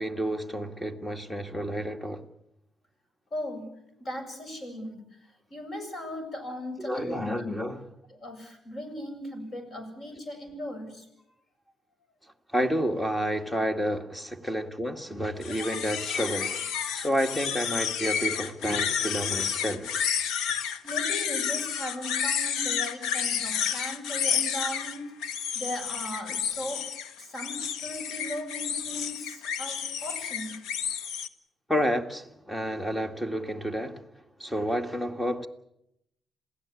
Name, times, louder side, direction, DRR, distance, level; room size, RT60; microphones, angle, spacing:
voice 1, 0.0-2.2 6.8-7.9 12.5-16.6 16.9-20.0 31.7-34.0 34.4-35.5, equal, 10° left, 2.1 m, -30 dB
voice 2, 3.3-3.7 4.0-7.3 8.1-11.1 20.8-26.9 27.2-30.6, left 1 dB, 45° left, 7.7 m, -38 dB
sound 1, 15.4-31.3, left 8 dB, 85° left, 1.2 m, -30 dB
27.5 x 17.0 x 8.5 m
cardioid pair, 90°, 0 cm